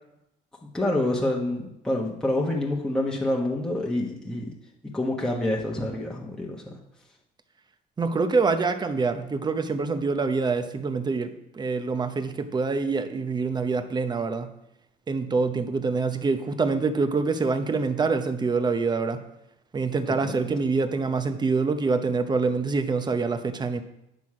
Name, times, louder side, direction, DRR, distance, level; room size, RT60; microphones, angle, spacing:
voice 1, 0.7-4.5 4.9-6.6 20.1-20.5, left 1 dB, 5° left, -2 dB, 1.2 m, -27 dB
voice 2, 8.0-14.5 15.1-19.2 19.7-23.8, right 4 dB, 25° right, 9 dB, 0.8 m, -25 dB
9.2 x 6.1 x 4.9 m, 0.85 s
cardioid pair, 110°, 17 cm